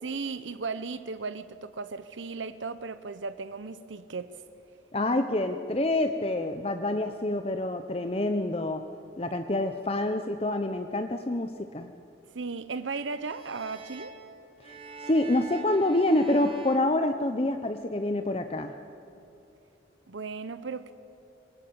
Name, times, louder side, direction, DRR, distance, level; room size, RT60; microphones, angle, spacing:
voice 1, 0.0-4.3 9.2-9.3 12.3-14.1 20.1-20.9, right 4 dB, 85° right, 13 dB, 0.8 m, -36 dB
voice 2, 4.9-8.8 9.2-11.9 14.6-18.7, left 1 dB, 30° left, 7 dB, 0.8 m, -27 dB
sound 1, 13.2-17.8, right 3 dB, 30° right, 2.0 m, -45 dB
24.0 x 20.5 x 8.8 m, 2.9 s
head